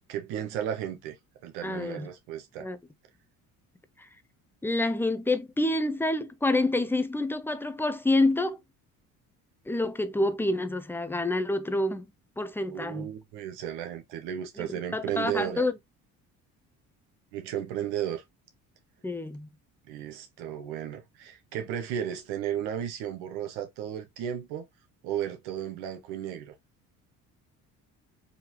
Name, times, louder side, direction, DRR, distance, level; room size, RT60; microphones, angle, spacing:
voice 1, 0.1-1.2 1.4-2.7 12.7-15.6 17.3-18.2 19.8-24.6 25.0-26.5, right 10 dB, 90° right, 0.9 m, -34 dB
voice 2, 1.6-2.1 2.6-2.8 4.0-4.1 4.6-8.6 9.7-12.1 12.4-13.1 14.6-15.7 19.0-19.5, left 2 dB, 5° left, 0.6 m, -28 dB
3.9 x 2.7 x 2.9 m
supercardioid pair, 70°, 38 cm